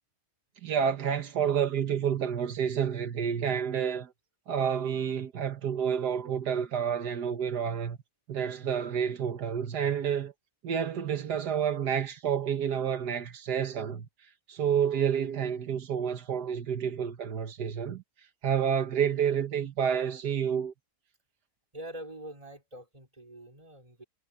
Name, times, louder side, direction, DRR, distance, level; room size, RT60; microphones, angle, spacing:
voice 1, 0.6-4.1 4.5-8.0 8.3-10.3 10.6-14.1 14.5-18.0 18.4-20.7, right 8 dB, 85° right, 1.8 m, -29 dB
voice 2, 21.7-24.0, right 1 dB, 20° right, 3.9 m, -44 dB
omnidirectional pair, 1.7 m